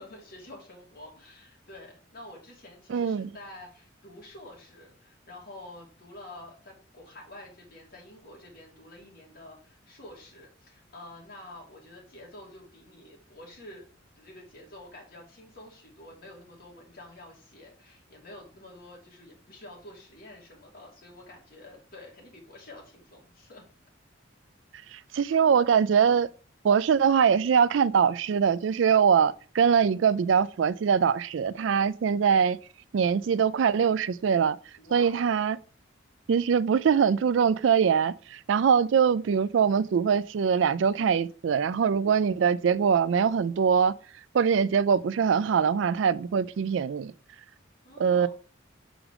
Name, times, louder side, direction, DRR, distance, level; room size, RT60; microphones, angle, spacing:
voice 1, 0.0-13.9 14.1-23.7 34.8-35.2 47.8-48.3, left 1 dB, 50° left, 2.8 m, -48 dB
voice 2, 2.9-3.3 24.9-26.3 26.6-32.6 32.9-34.6 34.9-35.6 36.3-43.9 44.3-47.1 48.0-48.3, right 7 dB, 70° right, 0.4 m, -23 dB
6.1 x 5.0 x 4.9 m
head